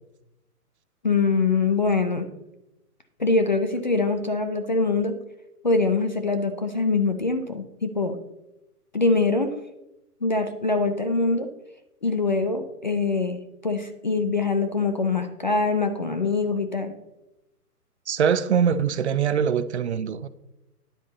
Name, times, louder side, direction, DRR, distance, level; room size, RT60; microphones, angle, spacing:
voice 1, 1.0-2.3 3.2-5.1 5.6-8.2 8.9-9.5 10.2-11.5 12.0-16.9, left 3 dB, 30° left, 0.4 m, -23 dB
voice 2, 18.1-20.3, right 7 dB, 50° right, 0.5 m, -23 dB
9.7 x 8.1 x 3.9 m
hypercardioid pair, 150°, 46 cm